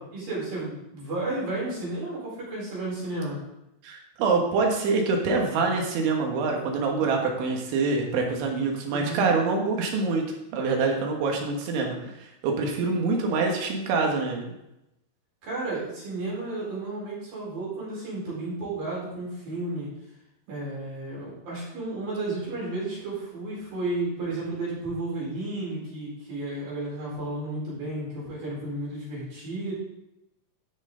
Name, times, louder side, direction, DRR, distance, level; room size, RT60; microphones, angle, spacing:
voice 1, 0.1-3.4 8.9-9.4 15.4-19.9 20.5-29.7, right 2 dB, 50° right, -7 dB, 5.8 m, -32 dB
voice 2, 3.8-10.3 10.5-12.0 12.4-14.5, right 4 dB, 75° right, 1 dB, 3.8 m, -25 dB
13.5 x 6.4 x 3.9 m, 0.88 s
omnidirectional pair, 5.5 m